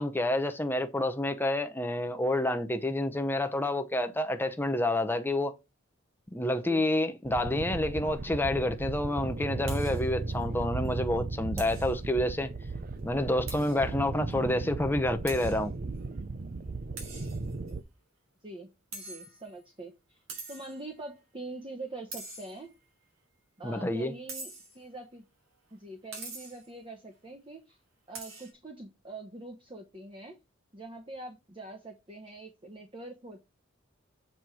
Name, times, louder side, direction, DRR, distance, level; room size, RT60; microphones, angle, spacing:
voice 1, 0.0-5.5 6.3-12.5 13.0-15.7 23.6-24.1, left 1 dB, 10° left, 0.8 m, -29 dB
sound 1, 7.3-17.8, right 3 dB, 45° right, 0.6 m, -36 dB
sound 2, 9.7-10.1 10.4-10.5 10.8-10.9 11.6-11.9 13.5-13.9 14.3-14.4 15.3-15.6 17.0-17.7 18.9-19.6 20.3-20.8 22.1-22.9 24.3-24.8 26.1-26.7 28.1-28.5, right 3 dB, 75° right, 3.1 m, -44 dB
voice 2, 18.4-20.2 20.5-22.7 23.6-25.2 25.7-27.8 28.1-30.4 30.7-33.4, right 2 dB, 25° right, 1.1 m, -44 dB
7.8 x 4.3 x 4.8 m
head